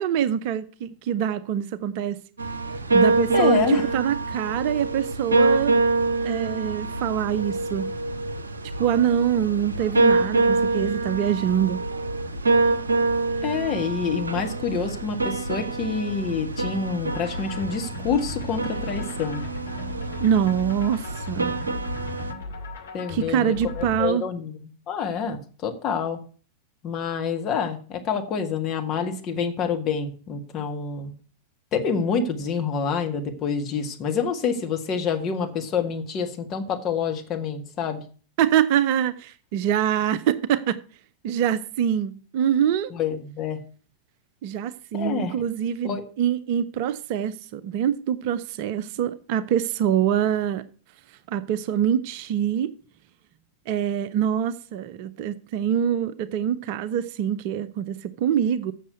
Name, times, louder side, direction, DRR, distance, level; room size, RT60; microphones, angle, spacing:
voice 1, 0.0-2.2 2.9-5.7 6.2-7.9 8.8-11.8 20.2-21.5 23.1-24.2 38.4-40.8 41.2-42.9 44.4-50.7 51.3-52.7 53.7-58.7, right 9 dB, 45° right, 0.6 m, -24 dB
sound 1, 2.4-22.3, right 3 dB, 75° right, 0.8 m, -25 dB
voice 2, 3.3-3.9 13.4-19.4 22.9-26.2 26.8-31.1 31.7-38.0 42.9-43.6 44.9-45.3 45.8-46.0, left 6 dB, 35° left, 1.8 m, -27 dB
sound 2, 17.1-24.1, left 3 dB, 65° left, 2.1 m, -38 dB
7.5 x 6.6 x 7.9 m
figure-of-eight pair, 90°, 0 cm